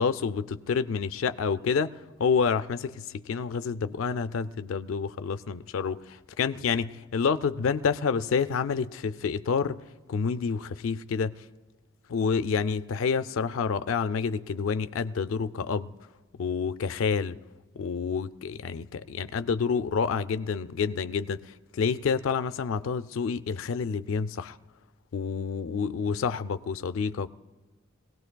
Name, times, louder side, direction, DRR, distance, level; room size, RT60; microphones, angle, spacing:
voice 1, 0.0-9.8 10.1-11.3 12.1-15.9 16.4-17.4 17.8-24.6 25.1-27.3, left 5 dB, 75° left, 0.4 m, -28 dB
22.0 x 17.5 x 2.2 m
head